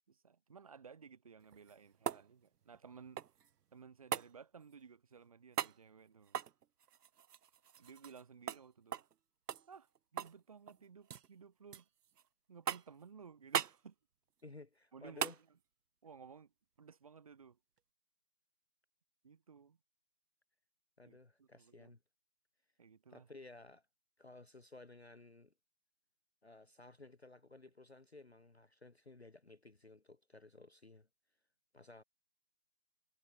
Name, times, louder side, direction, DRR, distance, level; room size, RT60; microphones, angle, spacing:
voice 1, 0.0-3.2 3.7-6.4 7.8-9.0 9.7-11.9 12.5-14.0 14.9-15.3 16.0-16.5 16.8-17.6 19.2-19.8 21.0-21.9 22.8-23.3, right 6 dB, 20° right, 3.6 m, -57 dB
sound 1, 1.4-3.5 4.1-4.3 5.5-5.8 6.3-8.2 8.5-8.6 8.9-9.1 9.5-10.4 10.7-11.3 11.7-12.2 12.7-13.0 13.5-13.8 15.2-15.4 17.8-17.9, right 9 dB, 80° right, 0.6 m, -40 dB
voice 2, 14.4-15.4 21.0-22.0 23.1-23.9 24.2-25.5 26.4-31.1 31.7-32.0, left 2 dB, 45° left, 0.8 m, -56 dB
figure-of-eight pair, 165°, 47 cm